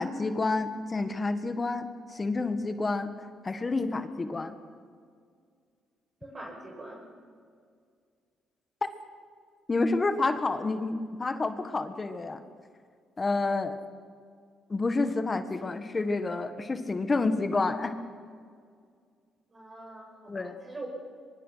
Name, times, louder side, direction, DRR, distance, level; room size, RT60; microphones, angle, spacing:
voice 1, 0.0-3.1 3.4-4.6 9.7-12.4 13.2-13.7 14.7-17.9 20.3-20.5, left 3 dB, 30° left, 9 dB, 1.6 m, -29 dB
voice 2, 6.2-7.0 19.5-20.9, right 2 dB, 30° right, 0 dB, 6.9 m, -43 dB
23.5 x 22.0 x 5.8 m, 2.1 s
cardioid pair, 90°, 0 cm